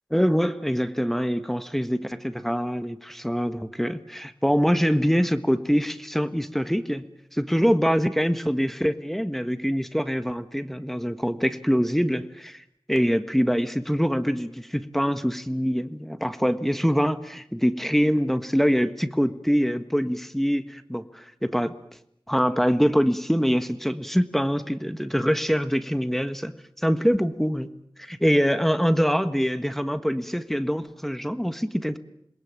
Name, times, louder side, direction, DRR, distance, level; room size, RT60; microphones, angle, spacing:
voice 1, 0.1-7.0 7.3-21.7 22.3-27.7 28.0-32.0, equal, 5° left, 10 dB, 1.5 m, -24 dB
27.5 x 21.0 x 8.9 m, 0.77 s
wide cardioid pair, 45°, 8 cm